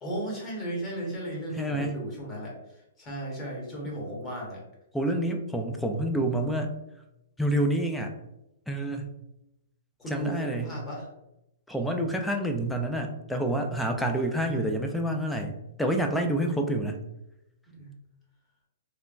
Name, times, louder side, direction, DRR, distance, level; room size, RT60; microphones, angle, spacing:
voice 1, 0.0-2.5 3.0-4.6 10.0-11.1 14.1-14.8 17.7-17.9, right 1 dB, 20° left, -3 dB, 1.1 m, -35 dB
voice 2, 1.5-1.9 4.9-6.7 7.4-8.1 8.7-9.1 10.1-10.7 11.7-17.0, right 1 dB, 5° left, 3 dB, 0.4 m, -28 dB
3.2 x 2.2 x 2.4 m, 0.88 s
hypercardioid pair, 125°, 0 cm